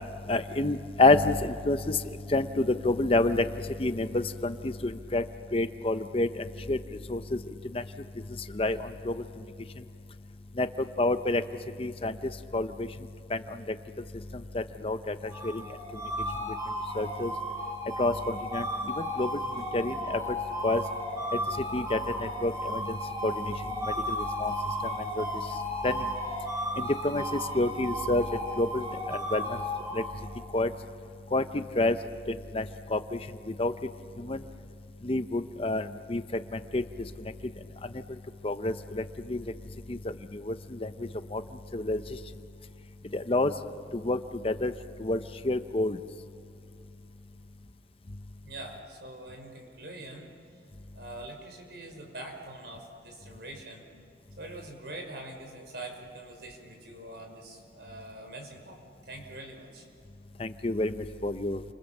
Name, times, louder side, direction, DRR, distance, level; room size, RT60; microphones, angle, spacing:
voice 1, 0.3-2.0 2.3-3.5 3.8-5.2 5.5-6.8 7.1-7.4 7.7-7.8 8.5-9.2 10.6-11.4 11.8-12.9 13.3-13.7 14.5-15.6 16.9-17.3 18.0-19.4 19.7-20.2 20.6-20.8 21.7-23.0 23.2-23.5 24.1-24.5 25.2-25.3 25.8-26.1 26.8-28.2 28.6-29.6 29.9-30.0 30.5-30.7 31.3-32.0 32.3-32.6 32.9-33.2 33.5-33.7 34.2-34.4 35.0-36.8 38.4-39.4 39.9-40.0 40.3-40.9 41.3-41.4 41.7-42.0 43.1-43.5 43.9-44.2 44.4-44.7 45.0-46.0 60.4-61.6, left 2 dB, 30° left, 10 dB, 0.8 m, -28 dB
sound 1, 15.2-30.5, equal, 20° right, 5.3 m, -34 dB
voice 2, 48.4-50.3 50.9-53.8 54.4-58.8 59.0-59.8, right 1 dB, 65° right, 3 dB, 5.3 m, -44 dB
30.0 x 26.0 x 7.3 m, 2.6 s
head